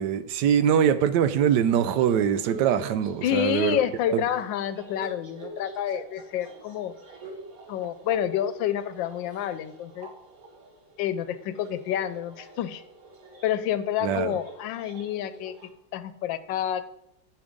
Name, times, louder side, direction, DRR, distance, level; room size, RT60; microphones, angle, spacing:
voice 1, 0.0-3.8 4.1-4.2 14.0-14.4, right 9 dB, 75° right, 12 dB, 1.1 m, -23 dB
sound 1, 1.6-15.7, right 3 dB, 55° right, 1.6 m, -46 dB
voice 2, 3.2-6.9 7.7-10.1 11.0-12.8 13.4-15.5 15.9-16.8, left 11 dB, 85° left, 13 dB, 1.3 m, -28 dB
7.9 x 6.9 x 5.2 m, 0.79 s
omnidirectional pair, 2.0 m